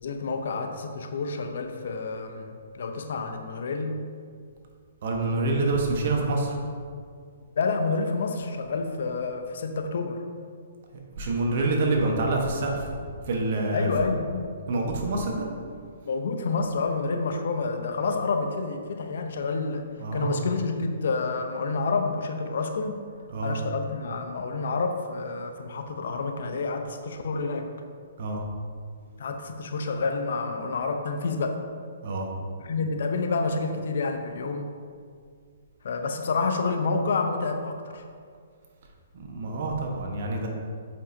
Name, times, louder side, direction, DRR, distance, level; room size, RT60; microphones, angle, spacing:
voice 1, 0.0-4.0 7.6-10.2 13.7-14.6 16.1-23.0 23.4-27.7 29.2-31.6 32.6-34.7 35.8-38.0, left 4 dB, 65° left, 6 dB, 0.7 m, -29 dB
voice 2, 5.0-6.6 11.2-12.9 13.3-13.9 14.7-15.5 20.0-20.5 23.3-23.6 28.2-28.4 32.0-32.3 39.1-40.5, right 2 dB, 55° right, 1 dB, 1.2 m, -27 dB
7.3 x 5.4 x 2.7 m, 2.1 s
hypercardioid pair, 140°, 0 cm